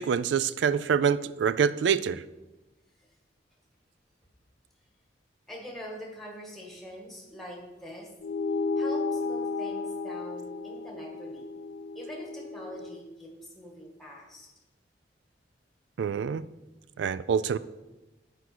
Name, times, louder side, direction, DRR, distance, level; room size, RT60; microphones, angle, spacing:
voice 1, 0.0-2.2 16.0-16.5 17.0-17.6, right 7 dB, 75° right, 16 dB, 0.3 m, -26 dB
voice 2, 5.5-8.1 8.8-11.6 12.0-14.5, equal, ahead, -1 dB, 1.7 m, -44 dB
sound 1, 8.2-13.0, left 4 dB, 65° left, 0.5 m, -33 dB
8.1 x 4.7 x 6.0 m, 1.0 s
head